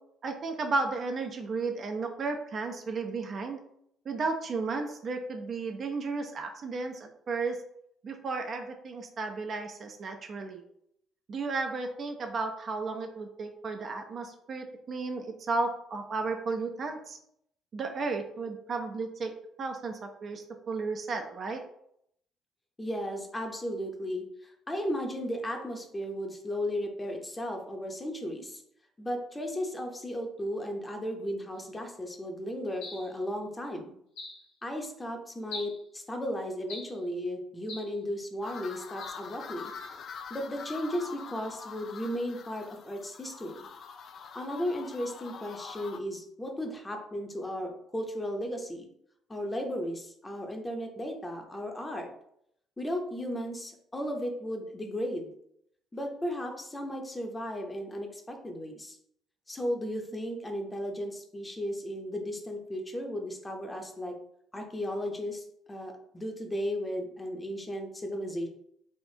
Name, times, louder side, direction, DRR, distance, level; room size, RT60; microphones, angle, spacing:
voice 1, 0.2-3.6 4.1-7.6 8.0-10.6 11.3-17.2 17.7-19.3 19.6-21.6, right 3 dB, 45° right, 4 dB, 0.5 m, -33 dB
voice 2, 22.8-28.6 29.0-33.9 34.6-39.7 40.3-43.7 44.3-48.9 49.3-52.1 52.8-55.3 55.9-59.0 59.5-64.1 64.5-68.5, equal, 20° left, 3 dB, 0.8 m, -35 dB
sound 1, 32.8-33.2 34.2-34.5 35.5-35.8 36.7-37.0 37.7-38.0 39.0-39.2, left 2 dB, 70° left, 1.1 m, -42 dB
sound 2, 38.4-46.0, left 6 dB, 50° left, 0.3 m, -44 dB
3.4 x 2.5 x 2.8 m, 0.71 s
figure-of-eight pair, 50°, 0 cm